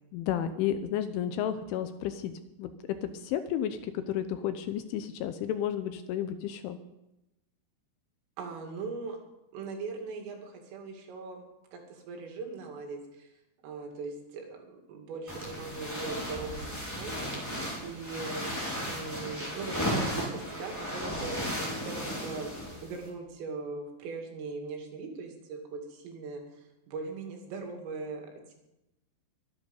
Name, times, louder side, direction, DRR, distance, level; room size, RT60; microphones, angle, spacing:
voice 1, 0.1-2.3 2.6-2.7 3.0-6.8, left 10 dB, 80° left, 10 dB, 3.0 m, -32 dB
voice 2, 8.4-9.2 9.5-11.5 11.7-13.3 13.6-17.2 17.8-18.5 18.8-28.5, right 4 dB, 75° right, 2 dB, 5.0 m, -40 dB
sound 1, 15.3-23.1, equal, 5° left, 3.7 m, -35 dB
23.5 x 10.5 x 5.5 m, 0.92 s
omnidirectional pair, 6.0 m